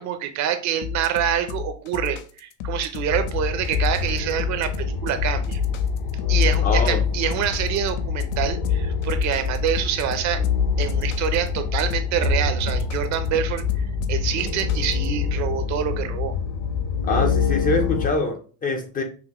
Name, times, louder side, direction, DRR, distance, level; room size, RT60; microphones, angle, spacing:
voice 1, 0.0-5.6 6.3-10.4 10.8-16.3, right 10 dB, 45° right, 0.5 m, -26 dB
sound 1, 0.8-15.1, left 8 dB, 85° left, 0.6 m, -33 dB
sound 2, 3.1-18.1, left 6 dB, 50° left, 0.7 m, -25 dB
voice 2, 6.6-7.0 17.0-19.0, left 3 dB, 25° left, 0.4 m, -24 dB
5.8 x 2.0 x 2.9 m
cardioid pair, 140°, 38 cm